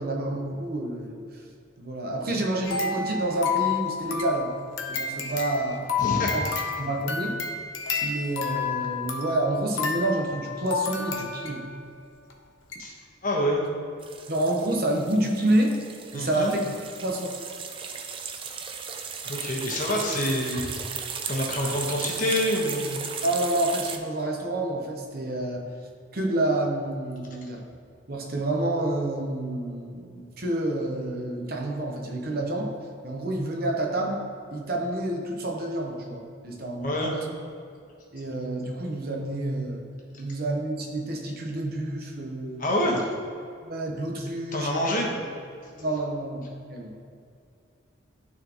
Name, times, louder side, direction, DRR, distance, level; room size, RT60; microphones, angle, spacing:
voice 1, 0.0-1.4 1.8-4.5 4.9-5.9 6.1-6.5 6.8-7.4 8.0-11.7 14.3-15.8 16.1-16.6 17.0-17.3 23.2-25.6 26.1-27.6 28.1-32.7 33.0-34.2 34.5-37.3 38.1-39.8 40.2-42.6 43.6-45.2 45.8-46.9, right 1 dB, 50° right, 0 dB, 0.9 m, -28 dB
sound 1, 2.6-11.8 12.3-12.4 12.7-12.8, left 6 dB, 80° left, 0.8 m, -30 dB
voice 2, 6.0-6.3 12.8-12.9 13.2-13.6 16.1-16.5 19.2-20.7 21.3-23.0 36.8-37.1 42.6-43.0 44.5-45.1 45.7-45.8, left 1 dB, 40° left, -2 dB, 1.2 m, -26 dB
sound 2, 14.0-24.0, right 6 dB, 25° right, 0.3 m, -36 dB
12.0 x 4.2 x 3.0 m, 2.3 s
head